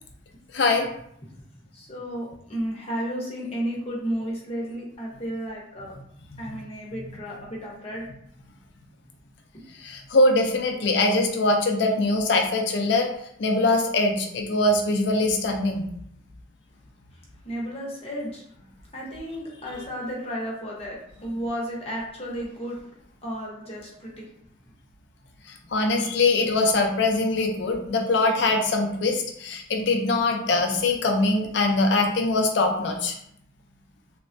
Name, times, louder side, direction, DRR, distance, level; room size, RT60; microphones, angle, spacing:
voice 1, 0.5-0.9 9.8-13.1 13.4-15.9 25.7-33.1, left 2 dB, 60° left, 3 dB, 0.5 m, -22 dB
voice 2, 1.7-5.9 6.4-8.1 17.1-18.5 18.9-22.9 23.2-24.3, equal, 30° left, -3 dB, 0.7 m, -33 dB
3.2 x 2.1 x 2.5 m, 0.71 s
head